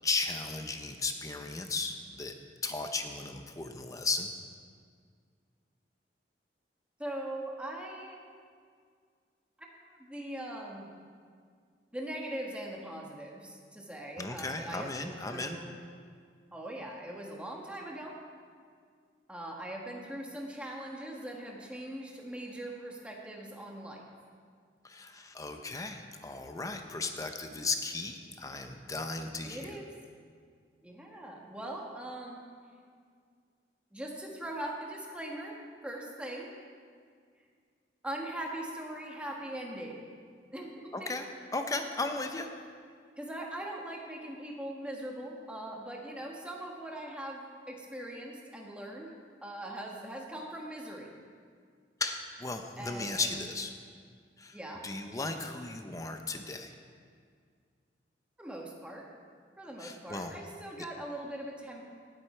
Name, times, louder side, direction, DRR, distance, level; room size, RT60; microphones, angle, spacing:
voice 1, 0.0-2.3 2.6-4.3 14.2-15.6 24.8-29.7 40.9-41.3 41.5-42.5 52.0-53.7 54.4-54.6 54.8-56.7 59.8-60.3, left 3 dB, 20° left, 5 dB, 0.7 m, -35 dB
voice 2, 7.0-8.2 10.0-10.9 11.9-15.7 16.5-18.2 19.3-24.1 29.4-29.9 30.8-32.4 33.9-36.5 38.0-40.1 40.5-41.1 43.2-49.1 49.4-51.1 52.8-53.5 54.5-54.8 58.4-59.0 59.6-61.9, right 1 dB, 5° right, -1 dB, 1.5 m, -41 dB
18.5 x 8.0 x 4.5 m, 2.1 s
head